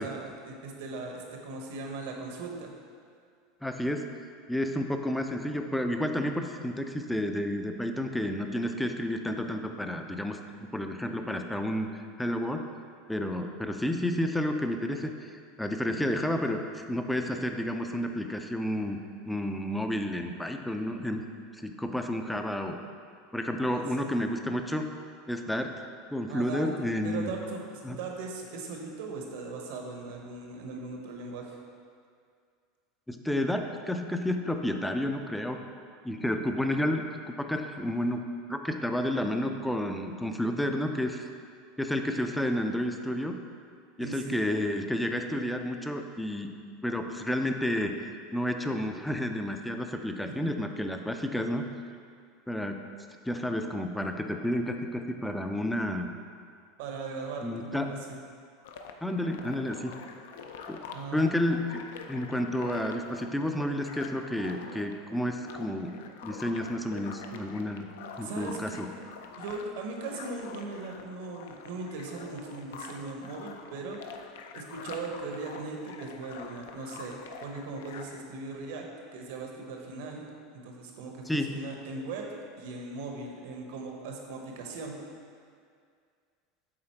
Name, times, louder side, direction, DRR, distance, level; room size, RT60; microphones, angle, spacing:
voice 1, 0.0-2.7 23.6-24.1 26.3-26.7 27.0-31.6 44.0-44.4 50.4-50.5 56.8-58.2 60.9-61.2 68.2-68.8 69.4-74.0 74.5-78.8 79.1-80.3 80.6-82.2 82.6-85.0, right 3 dB, 70° right, 1 dB, 1.0 m, -39 dB
voice 2, 3.6-4.0 4.5-12.6 13.1-19.0 19.3-21.2 21.5-22.8 23.3-24.9 25.3-25.7 26.1-27.3 27.8-28.0 33.1-35.6 36.0-41.3 41.8-43.3 44.0-46.5 46.8-51.6 52.5-52.8 53.3-56.1 57.4-57.9 59.0-59.9 60.7-60.8 61.1-67.9 68.2-68.9 81.3-81.5, left 1 dB, 5° left, 5 dB, 0.3 m, -31 dB
sound 1, 58.6-78.3, left 5 dB, 85° left, 0.5 m, -46 dB
7.5 x 4.0 x 4.4 m, 2.2 s
supercardioid pair, 160°, 0 cm